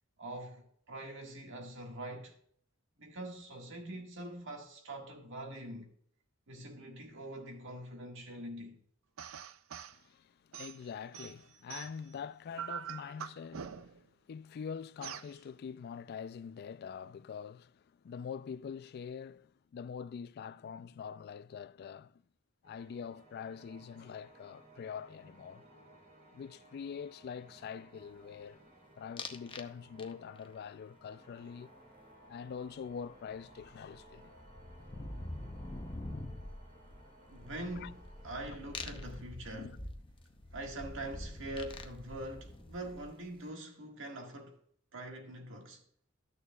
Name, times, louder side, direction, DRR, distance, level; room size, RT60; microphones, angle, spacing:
voice 1, 0.2-2.3 3.0-5.9 6.5-8.8 37.3-39.8 40.5-44.6 44.9-45.8, right 1 dB, 65° right, 1.7 m, -44 dB
sound 1, 9.2-10.0 10.5-12.1 12.6-14.1 15.0-15.3, right 8 dB, 90° right, 0.5 m, -44 dB
voice 2, 9.9-14.0 14.3-22.2 22.6-25.7 26.3-28.6 29.0-31.7 32.3-34.3 37.8-37.9 39.5-39.8, left 6 dB, 50° left, 0.3 m, -44 dB
sound 2, 22.6-39.1, right 1 dB, 50° right, 3.1 m, -59 dB
sound 3, 29.2-29.7 30.0-30.5 32.9-33.0 33.2-43.3, left 2 dB, 25° left, 0.7 m, -45 dB
12.5 x 6.6 x 2.3 m
head